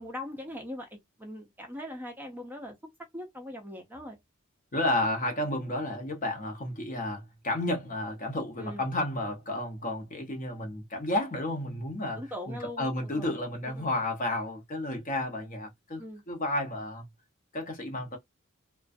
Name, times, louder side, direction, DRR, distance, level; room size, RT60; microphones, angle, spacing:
voice 1, 0.0-2.7 3.1-4.2 8.6-8.9 12.2-13.3 13.7-13.9 16.0-16.2, left 1 dB, 10° right, 0.4 m, -41 dB
voice 2, 4.7-17.0 17.5-18.2, left 1 dB, 35° left, 0.7 m, -32 dB
2.4 x 2.2 x 2.4 m
head